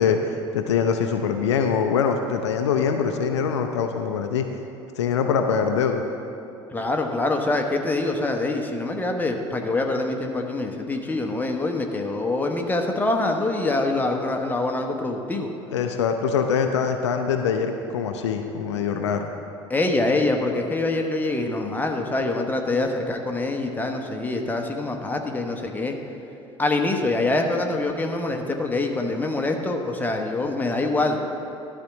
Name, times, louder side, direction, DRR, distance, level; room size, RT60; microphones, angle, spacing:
voice 1, 0.0-4.4 5.0-6.0 15.7-19.3, left 6 dB, 70° left, 5 dB, 0.5 m, -23 dB
voice 2, 6.7-15.5 19.7-26.0 26.6-31.2, left 2 dB, 10° left, 2 dB, 0.9 m, -25 dB
12.0 x 4.4 x 6.0 m, 2.7 s
figure-of-eight pair, 65°, 15 cm